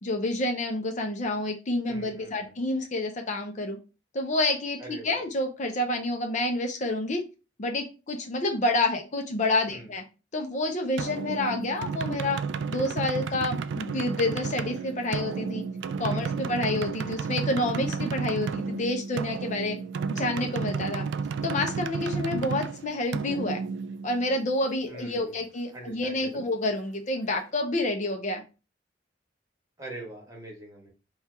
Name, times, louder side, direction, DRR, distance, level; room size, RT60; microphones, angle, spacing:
voice 1, 0.0-3.8 4.1-7.2 7.6-10.0 10.3-12.4 12.7-15.6 16.0-19.8 20.1-21.0 21.4-23.6 24.0-28.4, left 2 dB, 40° left, 4 dB, 0.5 m, -28 dB
voice 2, 1.9-2.6 4.8-5.2 9.7-9.9 16.0-16.5 24.9-25.4 25.7-26.4 29.8-30.9, right 1 dB, 20° right, 0 dB, 1.3 m, -43 dB
sound 1, 11.0-24.5, right 5 dB, 75° right, 0.3 m, -32 dB
4.3 x 2.3 x 3.3 m, 0.32 s
head